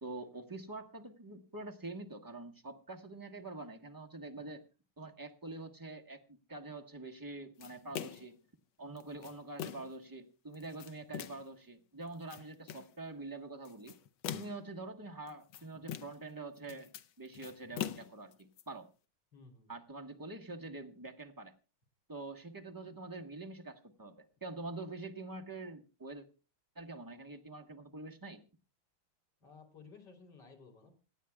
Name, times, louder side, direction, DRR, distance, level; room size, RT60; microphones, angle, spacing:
voice 1, 0.0-4.6 5.0-8.4 8.8-14.0 14.3-18.9 19.7-21.5 22.1-26.3 26.7-28.4, right 2 dB, 15° right, 3 dB, 1.0 m, -46 dB
sound 1, 7.6-8.4 9.0-10.0 10.5-11.5 12.1-12.9 13.7-14.7 15.3-16.3 16.6-18.6, left 10 dB, 75° left, 1.6 m, -43 dB
voice 2, 19.3-19.7 29.4-30.9, left 4 dB, 55° left, 2 dB, 4.0 m, -56 dB
27.0 x 9.3 x 2.3 m, 0.32 s
omnidirectional pair, 2.3 m